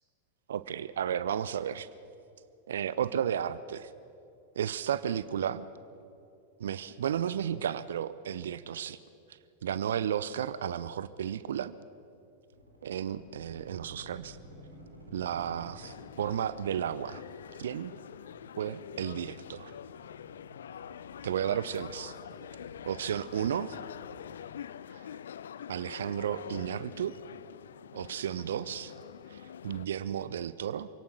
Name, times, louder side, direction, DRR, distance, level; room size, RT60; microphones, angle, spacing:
voice 1, 0.5-1.9 2.7-3.9 4.6-5.6 6.6-9.0 9.6-11.7 12.8-14.4 15.1-17.2 17.6-17.9 18.6-19.7 21.2-22.1 22.8-23.8 24.9-25.0 25.7-27.2 27.9-28.9 29.3-30.9, right 9 dB, 65° right, 16 dB, 0.6 m, -33 dB
sound 1, 12.5-24.3, right 1 dB, 90° right, 3.8 m, -54 dB
sound 2, 15.8-29.9, left 9 dB, 65° left, 0.5 m, -46 dB
27.0 x 17.5 x 6.2 m, 2.6 s
figure-of-eight pair, 90°, 0 cm